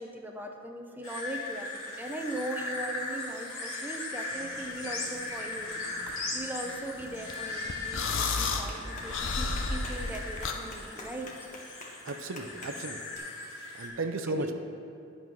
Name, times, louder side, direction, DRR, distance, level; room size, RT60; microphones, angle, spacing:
voice 1, 0.0-11.3 14.3-14.5, right 1 dB, 10° right, 2 dB, 0.5 m, -39 dB
sound 1, 1.0-13.9, left 2 dB, 80° left, 2.3 m, -38 dB
sound 2, 4.3-10.5, left 4 dB, 60° left, 0.7 m, -33 dB
Clapping, 6.5-13.2, left 2 dB, 35° left, 1.3 m, -49 dB
voice 2, 12.0-13.0 13.7-14.5, right 2 dB, 65° right, 7 dB, 0.6 m, -34 dB
10.5 x 5.6 x 6.0 m, 2.6 s
head